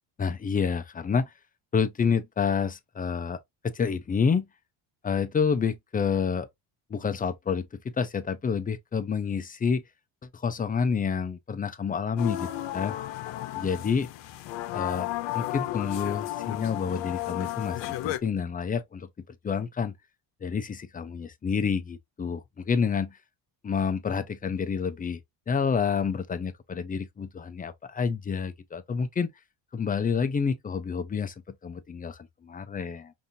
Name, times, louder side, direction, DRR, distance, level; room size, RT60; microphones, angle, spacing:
voice 1, 0.2-1.3 1.7-3.4 3.6-4.5 5.0-6.5 6.9-9.8 10.3-13.0 13.5-14.1 14.7-15.1 15.3-19.1 19.4-19.9 20.4-23.2 23.6-25.2 25.5-29.3 29.7-31.3 31.6-33.1, left 6 dB, 20° left, 0.4 m, -28 dB
sound 1, 12.2-18.2, left 15 dB, 70° left, 0.8 m, -33 dB
5.3 x 2.6 x 2.7 m
cardioid pair, 120°, 46 cm